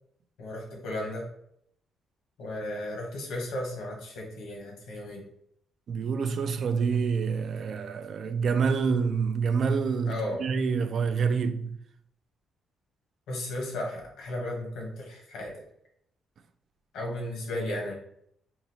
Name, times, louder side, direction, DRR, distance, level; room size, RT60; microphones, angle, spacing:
voice 1, 0.4-1.3 2.4-5.2 10.0-10.4 13.3-15.6 16.9-18.0, left 1 dB, 85° left, 1.0 m, -35 dB
voice 2, 5.9-11.8, right 5 dB, 55° right, 0.3 m, -27 dB
3.8 x 2.4 x 2.8 m
cardioid pair, 90°, 0 cm